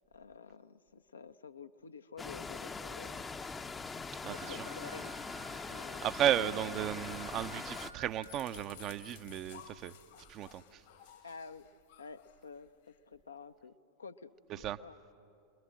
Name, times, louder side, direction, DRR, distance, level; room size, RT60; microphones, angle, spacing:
voice 1, 0.1-3.3 4.3-5.1 5.5-6.1 11.2-11.7 12.0-12.7 13.1-13.7 14.0-15.0, left 5 dB, 75° left, 9 dB, 0.7 m, -50 dB
sound 1, 2.2-7.9, left 4 dB, 15° left, 0.7 m, -42 dB
voice 2, 4.2-4.6 6.0-9.9 10.3-10.8 14.5-14.8, right 11 dB, 35° right, 12 dB, 0.7 m, -34 dB
Wind instrument woodwind instrument, 4.3-8.1, right 8 dB, 70° right, 2.8 m, -53 dB
sound 2, 6.0-13.0, left 10 dB, 55° left, 1.4 m, -56 dB
29.5 x 21.5 x 7.6 m, 2.7 s
figure-of-eight pair, 90°, 0 cm